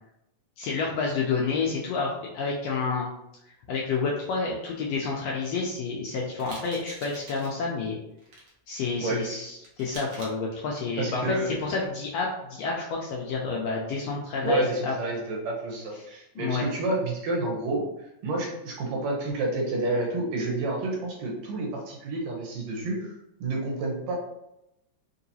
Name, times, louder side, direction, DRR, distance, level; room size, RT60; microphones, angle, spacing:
voice 1, 0.6-3.1 3.7-8.0 8.7-14.9 16.4-16.6, left 4 dB, 80° left, -2 dB, 1.5 m, -29 dB
sound 1, 6.4-7.6 8.2-8.5 9.6-10.3, right 2 dB, 90° right, 0.9 m, -44 dB
voice 2, 11.0-11.5 14.4-17.9 18.2-23.1 23.4-24.2, right 2 dB, 75° right, -2 dB, 2.0 m, -29 dB
4.5 x 2.8 x 2.7 m, 0.85 s
omnidirectional pair, 3.3 m